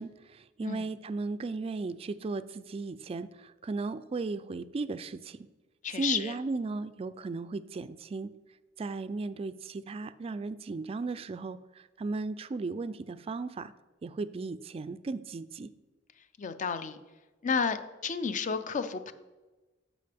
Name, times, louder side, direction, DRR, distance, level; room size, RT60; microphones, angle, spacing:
voice 1, 0.0-5.5 5.9-8.3 8.8-13.7 14.0-15.7, right 3 dB, 30° right, 14 dB, 0.3 m, -36 dB
voice 2, 5.8-6.3 16.4-17.0 17.4-17.8 18.0-19.1, left 6 dB, 40° left, 11 dB, 0.5 m, -31 dB
13.0 x 5.0 x 3.5 m, 1.2 s
head